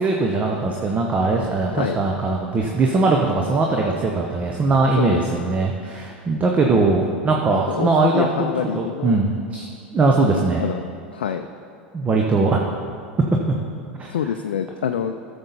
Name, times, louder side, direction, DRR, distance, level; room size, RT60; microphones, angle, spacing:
voice 1, 0.0-8.5 8.7-9.7 9.9-10.7 11.9-12.6 13.5-13.6 14.0-14.1, right 3 dB, 25° right, 1 dB, 1.0 m, -20 dB
voice 2, 7.7-9.2 10.6-10.8 11.1-11.5 14.1-15.1, left 8 dB, 70° left, 6 dB, 0.4 m, -26 dB
14.5 x 7.0 x 4.1 m, 2.4 s
figure-of-eight pair, 80°, 6 cm